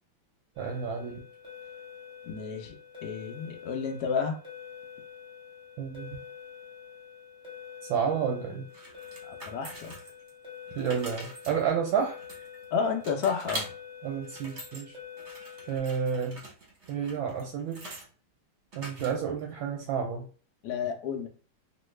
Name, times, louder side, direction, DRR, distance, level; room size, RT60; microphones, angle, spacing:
sound 1, 0.5-15.8, left 7 dB, 5° right, 0.7 m, -47 dB
voice 1, 0.6-1.2 5.8-6.2 7.9-8.6 10.8-12.2 14.0-15.0 15.7-16.4 16.9-17.8 18.7-20.3, right 7 dB, 75° right, 1 dB, 1.3 m, -30 dB
voice 2, 2.2-2.7 3.0-4.4 9.2-9.9 12.7-13.7 20.6-21.3, left 6 dB, 75° left, 3 dB, 0.9 m, -31 dB
sound 2, 8.7-10.3 10.7-12.7 13.0-13.7 14.1-14.8 15.2-18.1 18.7-19.4, right 1 dB, 45° right, 1.0 m, -43 dB
3.1 x 2.6 x 3.1 m, 0.39 s
omnidirectional pair, 2.4 m